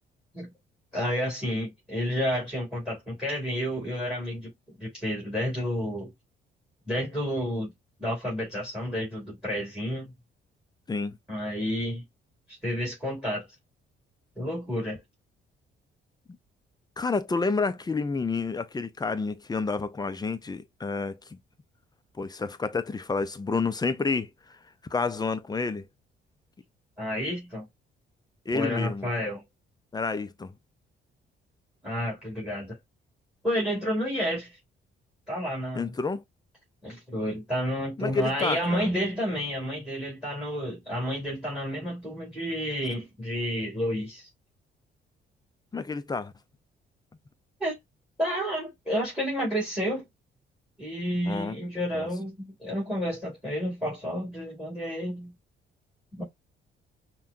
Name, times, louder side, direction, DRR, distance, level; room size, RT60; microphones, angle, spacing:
voice 1, 0.9-6.1 6.9-7.7 8.0-10.1 11.3-12.0 12.5-13.5 14.4-15.0 27.0-27.7 28.5-29.4 31.8-32.8 33.4-34.6 35.3-35.9 36.8-44.3 47.6-47.8 48.2-50.0 50.8-55.3 56.1-56.2, equal, 5° right, 2.5 m, -30 dB
voice 2, 17.0-21.4 22.2-24.3 24.9-25.8 28.5-29.1 29.9-30.5 35.7-36.2 38.0-38.8 45.7-46.3 51.3-51.5 51.9-52.1, left 4 dB, 20° left, 0.5 m, -29 dB
5.6 x 2.3 x 2.6 m
cardioid pair, 90°, 20 cm